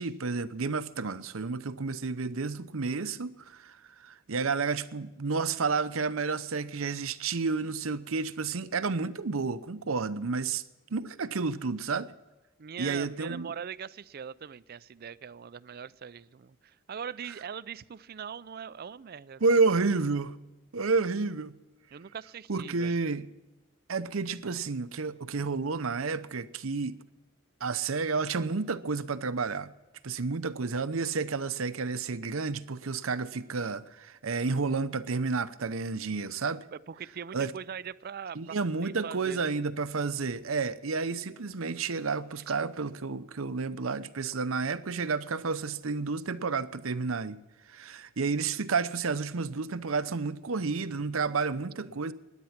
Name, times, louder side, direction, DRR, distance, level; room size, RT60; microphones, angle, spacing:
voice 1, 0.0-10.6 10.9-12.1 12.8-13.5 19.4-20.4 20.7-21.6 22.5-23.3 23.9-27.0 27.6-29.7 30.0-36.6 37.3-37.5 38.3-47.4 47.7-52.1, right 4 dB, 75° right, 0.7 m, -30 dB
voice 2, 12.6-19.4 19.8-19.9 21.9-23.0 36.7-39.5 42.5-42.6 51.8-51.9, right 7 dB, 45° right, 0.4 m, -41 dB
16.5 x 10.5 x 5.9 m
head